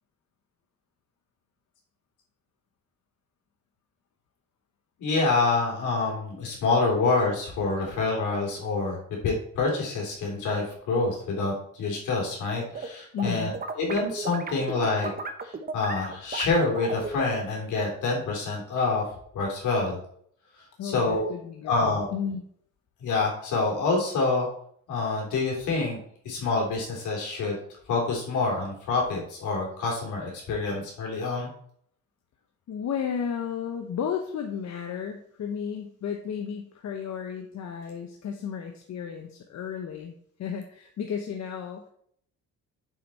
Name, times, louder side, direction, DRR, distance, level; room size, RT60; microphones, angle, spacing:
voice 1, 5.0-9.0 9.2-13.5 13.8-15.1 15.4-19.0 19.3-20.0 20.8-21.3 21.6-22.1 23.0-24.5 24.9-26.0 26.2-27.6 27.9-31.5, left 3 dB, 80° left, -1 dB, 3.3 m, -27 dB
sound 1, 12.3-12.9 13.2-17.4, right 4 dB, 30° right, 0.9 m, -35 dB
voice 2, 13.1-13.5 20.8-22.4 32.7-41.9, left 7 dB, 65° left, 4 dB, 1.0 m, -33 dB
6.8 x 5.9 x 4.2 m, 0.64 s
cardioid pair, 90°, 30 cm